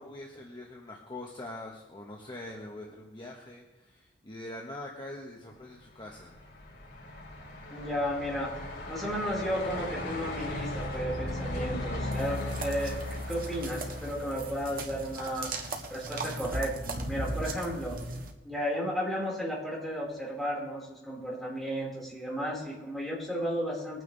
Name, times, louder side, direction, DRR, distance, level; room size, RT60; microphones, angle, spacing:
voice 1, 0.0-6.4, left 1 dB, 25° left, -1 dB, 1.3 m, -43 dB
Truck, 5.8-15.2, left 1 dB, 80° left, 4.4 m, -37 dB
voice 2, 7.7-15.5 15.9-18.0 18.4-24.0, equal, ahead, -6 dB, 4.7 m, -34 dB
sound 1, 12.1-18.3, right 2 dB, 50° right, 1.5 m, -38 dB
21.5 x 9.3 x 3.4 m, 1.0 s
head